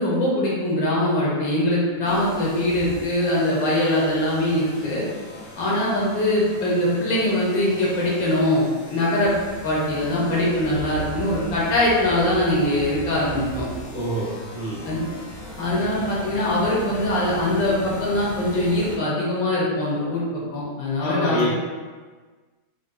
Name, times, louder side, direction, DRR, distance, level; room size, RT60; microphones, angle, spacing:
voice 1, 0.0-5.0 5.6-9.3 9.6-13.7 14.9-15.0 15.6-21.5, left 1 dB, 75° left, -5 dB, 1.5 m, -22 dB
sound 1, 2.0-19.0, right 1 dB, 90° left, 1.6 m, -38 dB
voice 2, 13.9-14.8 21.0-21.5, left 1 dB, 45° left, -6 dB, 1.0 m, -26 dB
5.0 x 2.5 x 2.2 m, 1.4 s
omnidirectional pair, 2.1 m